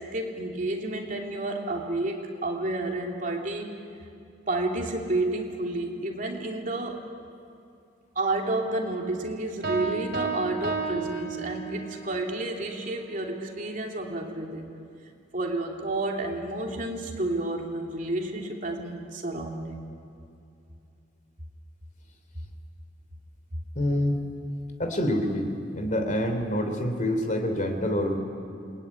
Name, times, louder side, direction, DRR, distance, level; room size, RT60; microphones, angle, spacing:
voice 1, 0.0-3.8 4.5-7.0 8.1-14.7 15.3-19.8, right 2 dB, 45° right, 1 dB, 3.0 m, -30 dB
Piano, 9.6-12.0, right 4 dB, 60° right, 3.6 m, -31 dB
voice 2, 23.7-24.2 24.8-28.2, left 1 dB, 45° left, 6 dB, 3.1 m, -26 dB
28.5 x 21.5 x 9.7 m, 2.6 s
head